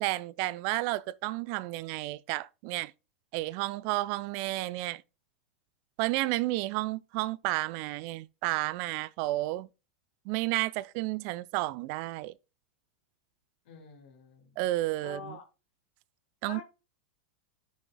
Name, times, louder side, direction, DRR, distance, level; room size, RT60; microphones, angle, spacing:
voice 1, 0.0-2.9 3.3-5.0 6.0-9.7 10.3-12.3 14.6-15.4 16.4-16.6, right 18 dB, 50° right, 0.4 m, -31 dB
voice 2, 13.7-14.6 15.0-15.4 16.4-16.6, left 5 dB, 65° left, 3.7 m, -46 dB
12.5 x 6.3 x 2.3 m
hypercardioid pair, 105°, 6 cm